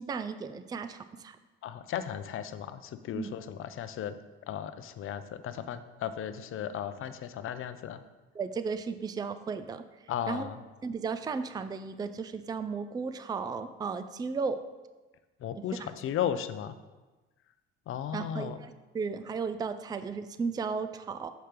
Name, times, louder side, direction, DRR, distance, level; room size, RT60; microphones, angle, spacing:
voice 1, 0.0-1.4 3.1-3.3 8.3-9.8 10.3-10.5 10.8-14.6 15.8-15.9 18.1-21.3, right 5 dB, 15° right, 10 dB, 0.4 m, -35 dB
voice 2, 1.6-4.2 4.5-8.0 10.1-10.6 15.4-16.8 17.9-18.6, left 9 dB, 45° left, 11 dB, 0.6 m, -35 dB
6.8 x 4.3 x 5.0 m, 1.2 s
hypercardioid pair, 65°, 30 cm